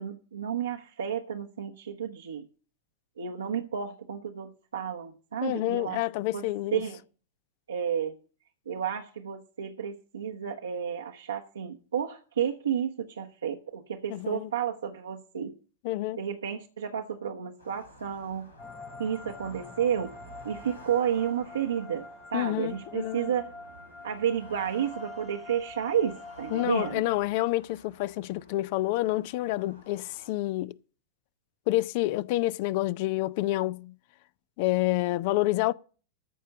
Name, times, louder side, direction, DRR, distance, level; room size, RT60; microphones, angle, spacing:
voice 1, 0.0-2.4 3.2-6.0 6.3-6.4 6.7-7.0 7.7-8.2 8.7-15.5 16.2-18.5 19.0-20.1 20.4-23.5 24.0-27.0, right 8 dB, 70° right, 1.0 m, -31 dB
voice 2, 5.4-6.8 14.1-14.5 15.8-16.2 22.3-23.3 26.5-30.7 31.7-33.9 34.6-35.7, left 17 dB, 50° left, 0.4 m, -28 dB
sound 1, 17.6-30.3, equal, 90° left, 2.6 m, -52 dB
sound 2, 18.6-27.0, left 2 dB, 10° left, 0.7 m, -46 dB
14.0 x 5.5 x 7.0 m
figure-of-eight pair, 90°, 0 cm